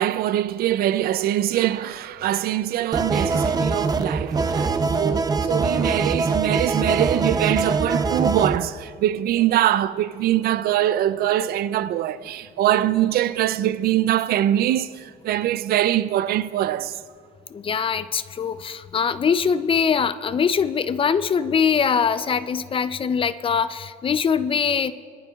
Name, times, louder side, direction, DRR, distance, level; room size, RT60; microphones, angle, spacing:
voice 1, 0.0-17.0, right 12 dB, 65° right, 0.5 m, -23 dB
sound 1, 2.9-8.6, right 4 dB, 25° right, 0.6 m, -23 dB
voice 2, 17.5-24.9, left 6 dB, 30° left, 0.5 m, -22 dB
22.0 x 12.0 x 2.4 m
cardioid pair, 110°, 17 cm